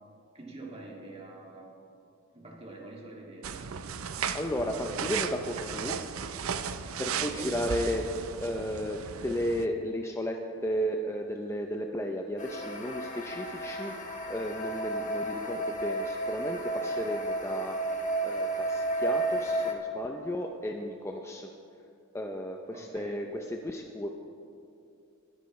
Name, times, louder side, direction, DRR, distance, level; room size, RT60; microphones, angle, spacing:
voice 1, 0.3-1.7 2.3-3.6 7.0-7.6 22.7-23.2, right 2 dB, 30° right, -2 dB, 2.2 m, -45 dB
sound 1, 3.4-9.7, right 7 dB, 85° right, 0.6 m, -35 dB
voice 2, 4.3-6.0 7.0-8.1 8.4-17.8 18.2-21.5 22.1-24.1, equal, 15° left, 2 dB, 0.5 m, -34 dB
sound 2, 12.4-19.7, right 2 dB, 40° left, 1.4 m, -32 dB
22.0 x 10.0 x 3.2 m, 2.6 s
head